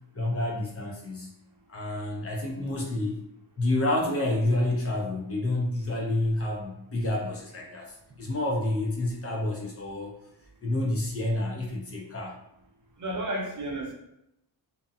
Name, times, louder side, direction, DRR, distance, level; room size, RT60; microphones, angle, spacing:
voice 1, 0.1-1.3 1.7-3.2 3.6-10.1 10.6-12.4, left 1 dB, 30° left, -2 dB, 0.7 m, -29 dB
voice 2, 13.0-13.9, right 1 dB, 45° right, -1 dB, 0.7 m, -32 dB
2.6 x 2.2 x 2.6 m, 0.80 s
cardioid pair, 90°, 44 cm